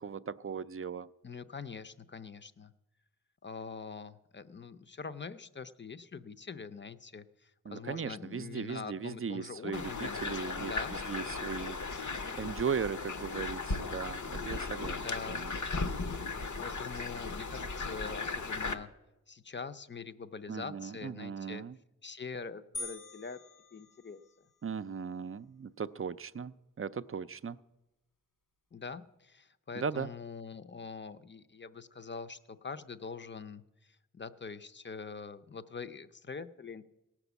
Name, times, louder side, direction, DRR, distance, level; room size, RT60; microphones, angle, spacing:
voice 1, 0.0-1.1 7.6-12.0 12.3-15.0 15.3-15.5 20.5-21.8 24.6-27.6 29.8-30.1, right 6 dB, 45° right, 15 dB, 0.4 m, -38 dB
voice 2, 1.2-2.7 3.4-10.2 10.6-11.0 14.8-15.4 16.6-18.9 19.3-21.6 22.0-23.4 23.7-24.2 28.7-33.6 34.1-36.9, left 5 dB, 35° left, 11 dB, 0.6 m, -44 dB
sound 1, 9.7-18.7, left 3 dB, 65° left, 0.9 m, -36 dB
sound 2, 22.7-24.5, left 2 dB, 80° left, 2.1 m, -45 dB
17.5 x 6.0 x 8.1 m, 0.97 s
wide cardioid pair, 75°, 32 cm